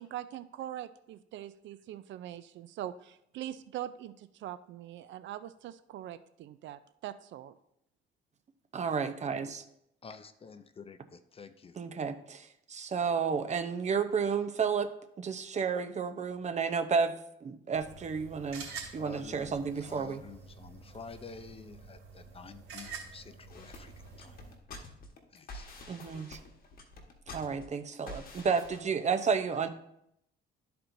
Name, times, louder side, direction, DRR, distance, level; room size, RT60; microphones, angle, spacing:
voice 1, 0.0-7.6, right 12 dB, 65° right, 13 dB, 0.4 m, -42 dB
voice 2, 8.7-9.6 11.8-14.9 15.2-17.1 17.4-18.6 18.9-20.2 25.9-26.4 27.3-29.7, right 5 dB, 35° right, 9 dB, 0.7 m, -31 dB
voice 3, 10.0-11.9 19.0-24.4 25.3-25.7, left 5 dB, 30° left, 11 dB, 0.5 m, -49 dB
sound 1, 17.7-24.5, right 5 dB, 85° right, 2.6 m, -48 dB
sound 2, 23.5-28.8, left 2 dB, 45° left, 1.4 m, -48 dB
12.5 x 4.3 x 2.7 m, 0.76 s
cardioid pair, 100°, 20 cm